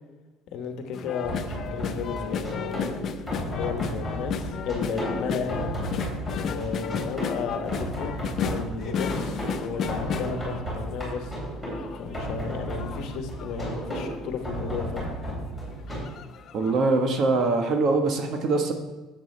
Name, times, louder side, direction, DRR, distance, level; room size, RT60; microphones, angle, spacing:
voice 1, 0.5-3.1 3.4-5.7 6.3-8.2 8.5-11.3 12.0-15.1, left 5 dB, 60° left, 6 dB, 1.1 m, -34 dB
sound 1, 0.9-11.3 11.7-14.1 14.7-14.8 15.1-15.3 15.9-16.8 17.2-17.3, left 7 dB, 40° left, 0.5 m, -34 dB
sound 2, 1.2-16.0, right 1 dB, 5° right, 3.3 m, -34 dB
voice 2, 16.5-18.7, right 3 dB, 45° right, 4 dB, 1.2 m, -23 dB
10.5 x 7.7 x 3.3 m, 1.2 s
cardioid pair, 150°, 0 cm